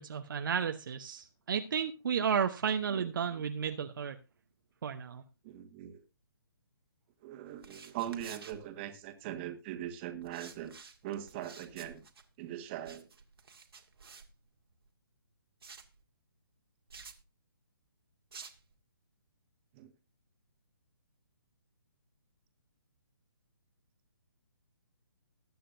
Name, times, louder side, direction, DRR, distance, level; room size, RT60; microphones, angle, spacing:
voice 1, 0.0-4.2 4.8-5.2, right 7 dB, 60° right, 1.0 m, -33 dB
voice 2, 2.9-3.4 5.4-6.0 7.2-10.7 11.0-12.0 12.4-13.1 19.7-19.9, right 11 dB, 30° right, 1.6 m, -41 dB
sound 1, 7.5-9.3 10.2-14.9 15.6-16.0 16.9-17.2 18.3-18.7, right 5 dB, 75° right, 1.9 m, -52 dB
20.0 x 8.4 x 2.6 m
figure-of-eight pair, 145°, 13 cm